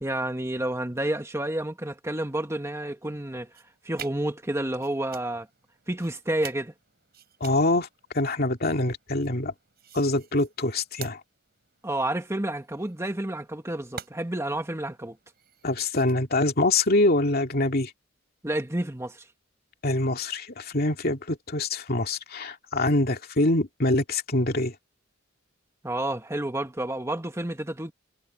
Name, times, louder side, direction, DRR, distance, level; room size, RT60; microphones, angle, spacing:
voice 1, 0.0-3.5 3.8-5.5 5.9-6.7 11.8-15.2 18.4-19.2 25.8-27.9, right 1 dB, 15° right, 1.7 m, -30 dB
sound 1, 3.0-16.1, right 7 dB, 50° right, 7.9 m, -49 dB
voice 2, 7.4-7.9 8.1-9.5 9.9-11.2 15.6-17.9 19.8-24.7, left 2 dB, 50° left, 2.5 m, -24 dB
head